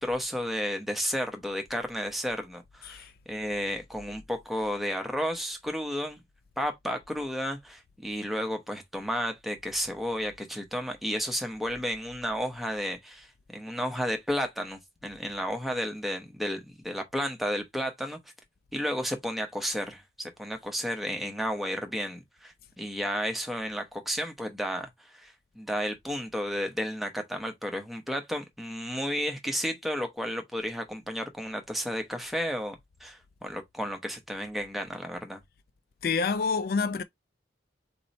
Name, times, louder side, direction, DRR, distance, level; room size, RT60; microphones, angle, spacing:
voice 1, 0.0-6.2 6.6-18.2 18.7-35.4, equal, ahead, 0.9 m, -32 dB
voice 2, 36.0-37.0, left 5 dB, 50° left, 0.3 m, -27 dB
4.2 x 3.1 x 4.0 m
head